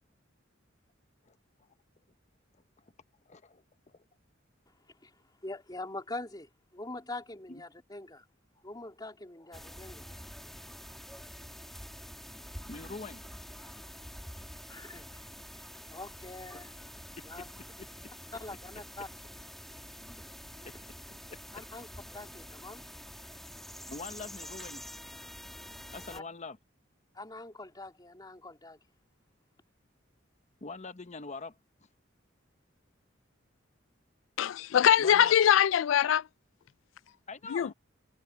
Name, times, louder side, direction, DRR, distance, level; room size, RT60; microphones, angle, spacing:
voice 1, 3.3-4.0 7.5-7.6 12.7-13.2 17.4-17.5 20.6-20.8 21.3-21.4 23.9-24.9 25.9-26.6 30.6-31.5 35.0-35.4 37.3-37.7, left 3 dB, 35° left, 1.0 m, -43 dB
voice 2, 5.4-8.2 8.6-10.2 14.7-16.7 17.2-17.5 18.3-19.1 20.5-20.7 21.5-21.9 22.1-22.9 26.1-26.2 27.1-28.8, left 2 dB, 20° left, 3.1 m, -44 dB
sound 1, 9.5-26.2, equal, ahead, 2.2 m, -47 dB
voice 3, 34.4-36.3 37.5-37.7, left 9 dB, 75° left, 0.3 m, -23 dB
head